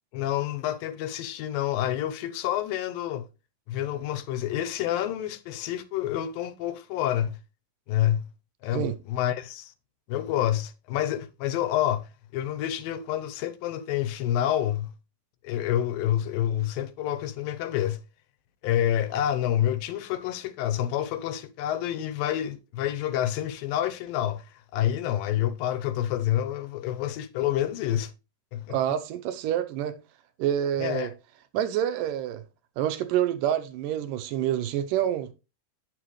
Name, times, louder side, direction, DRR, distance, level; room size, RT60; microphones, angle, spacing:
voice 1, 0.1-3.3 3.7-7.4 7.9-8.3 8.6-9.7 10.1-14.9 15.4-18.0 18.6-28.1 28.5-28.8 30.8-31.1, left 11 dB, 85° left, 2.5 m, -28 dB
voice 2, 28.7-30.0 30.4-31.1 31.5-32.4 32.8-35.3, right 11 dB, 80° right, 2.3 m, -27 dB
8.9 x 7.6 x 3.1 m
omnidirectional pair, 4.0 m